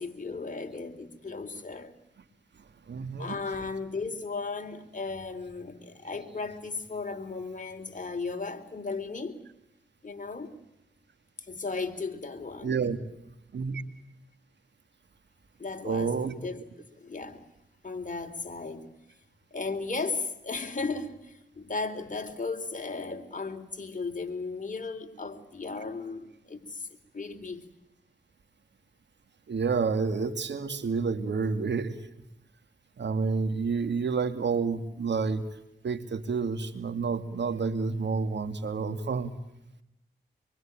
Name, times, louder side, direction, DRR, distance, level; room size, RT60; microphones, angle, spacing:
voice 1, 0.0-1.9 3.2-9.4 10.0-10.5 11.5-12.9 15.6-16.6 17.0-17.4 17.8-18.9 19.5-26.9 27.1-27.7, left 4 dB, 45° left, 3.9 m, -35 dB
voice 2, 2.9-3.4 12.6-13.0 13.5-13.8 15.8-16.3 29.5-31.9 33.0-35.4 35.8-39.3, right 5 dB, 75° right, 2.5 m, -29 dB
25.5 x 24.0 x 9.0 m
cardioid pair, 50°, 18 cm